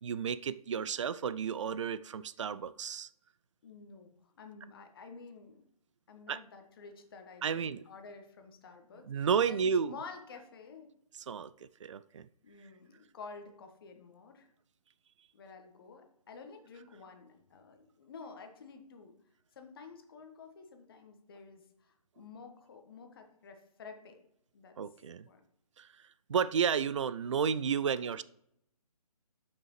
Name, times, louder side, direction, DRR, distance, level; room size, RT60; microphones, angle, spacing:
voice 1, 0.0-3.1 6.3-6.4 7.4-7.8 9.1-10.0 11.1-12.3 24.8-25.3 25.8-28.2, right 7 dB, 50° right, 0.4 m, -32 dB
voice 2, 3.6-5.6 6.1-10.9 12.4-14.5 15.3-19.1 19.5-24.2 24.5-24.8 25.2-25.4, left 4 dB, 40° left, 1.3 m, -50 dB
12.0 x 5.8 x 3.1 m
figure-of-eight pair, 140°, 19 cm